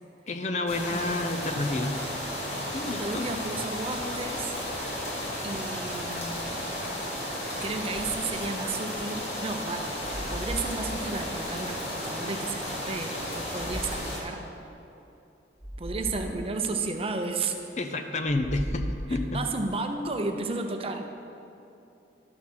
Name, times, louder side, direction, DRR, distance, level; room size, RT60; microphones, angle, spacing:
voice 1, 0.3-1.9 2.7-3.3 17.8-19.5, left 2 dB, 40° left, 6 dB, 0.6 m, -30 dB
sound 1, 0.7-14.2, left 1 dB, 60° left, 2.4 m, -34 dB
voice 2, 0.9-1.4 2.9-4.5 5.4-6.6 7.6-14.4 15.8-17.6 19.3-21.0, right 3 dB, 30° right, 5 dB, 0.6 m, -33 dB
sound 2, 7.9-8.4 10.0-11.5 13.5-14.2 15.6-16.4 18.2-19.6, equal, 15° left, 2.0 m, -37 dB
12.0 x 6.5 x 5.7 m, 2.8 s
head